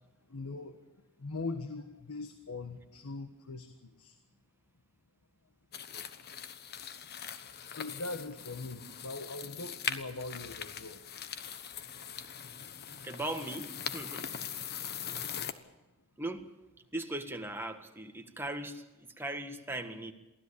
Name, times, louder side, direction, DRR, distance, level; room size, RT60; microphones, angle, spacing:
voice 1, 0.3-0.8 1.2-4.2 7.7-11.0, left 3 dB, 75° left, 7 dB, 1.4 m, -41 dB
sound 1, 5.7-15.5, left 8 dB, 45° left, 1.2 m, -41 dB
voice 2, 13.0-14.3 16.2-16.5 16.9-20.1, right 1 dB, 10° right, 5 dB, 1.7 m, -39 dB
23.5 x 16.0 x 8.7 m, 1.1 s
head